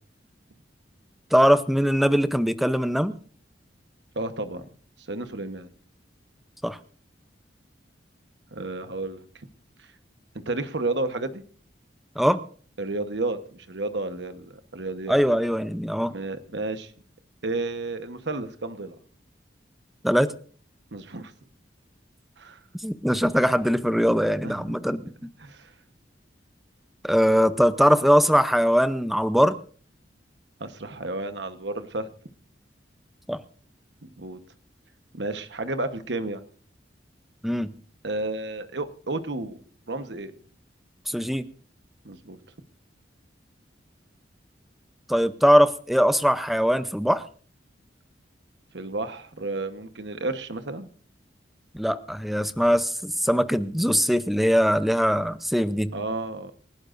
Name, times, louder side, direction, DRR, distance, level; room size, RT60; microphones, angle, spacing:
voice 1, 1.3-3.1 6.6-6.8 12.2-12.4 15.1-16.1 20.0-20.3 22.8-25.0 27.0-29.5 33.3-33.4 37.4-37.7 41.1-41.5 45.1-47.2 51.7-55.9, equal, ahead, 12 dB, 0.7 m, -21 dB
voice 2, 4.1-4.7 5.1-5.7 8.5-9.5 9.8-9.9 10.5-11.4 12.8-15.2 16.1-16.9 17.4-18.9 20.9-21.3 22.4-22.6 24.4-24.8 25.4-25.7 30.6-32.1 34.0-34.4 35.1-36.4 38.0-39.6 39.9-40.3 42.0-42.4 48.7-50.9 55.9-56.5, right 2 dB, 70° right, 10 dB, 1.2 m, -32 dB
28.0 x 11.5 x 2.6 m, 0.44 s
head